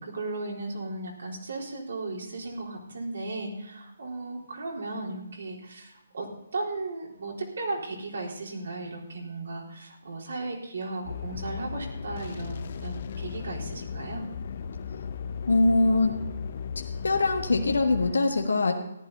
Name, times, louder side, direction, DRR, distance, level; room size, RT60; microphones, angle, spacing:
voice 1, 0.0-6.3 6.5-14.2, right 2 dB, 75° right, -2 dB, 4.0 m, -36 dB
sound 1, 11.0-18.1, left 6 dB, 50° left, 0.7 m, -36 dB
voice 2, 15.5-16.1 17.0-18.7, left 3 dB, 80° left, 3 dB, 1.4 m, -22 dB
14.5 x 11.0 x 4.1 m, 0.87 s
hypercardioid pair, 145°, 0 cm